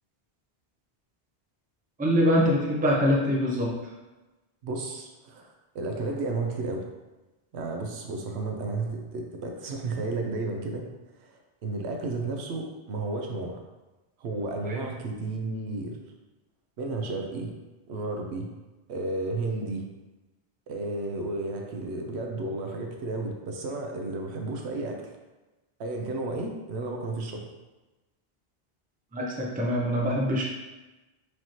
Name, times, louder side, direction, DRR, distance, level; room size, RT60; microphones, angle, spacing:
voice 1, 2.0-3.9 14.7-14.8 29.1-30.4, equal, 10° right, -3 dB, 0.5 m, -24 dB
voice 2, 4.6-6.8 7.5-10.9 11.2-13.6 14.2-16.0 16.8-17.5 17.9-18.5 18.9-19.8 20.7-25.1 25.8-27.4, right 2 dB, 85° right, 2 dB, 0.9 m, -32 dB
4.7 x 2.8 x 3.0 m, 1.1 s
omnidirectional pair, 1.1 m